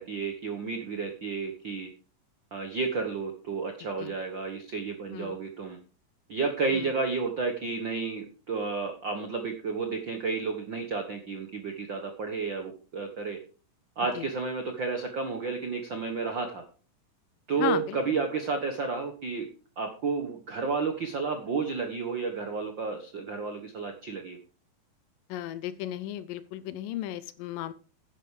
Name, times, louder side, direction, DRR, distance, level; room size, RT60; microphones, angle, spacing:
voice 1, 0.0-1.9 2.5-5.8 6.3-13.4 14.0-16.6 17.5-19.5 19.8-24.4, right 4 dB, 65° right, 5 dB, 1.1 m, -31 dB
voice 2, 17.6-18.0 25.3-27.7, left 13 dB, 80° left, 16 dB, 2.2 m, -34 dB
10.5 x 10.0 x 4.8 m, 0.38 s
omnidirectional pair, 4.1 m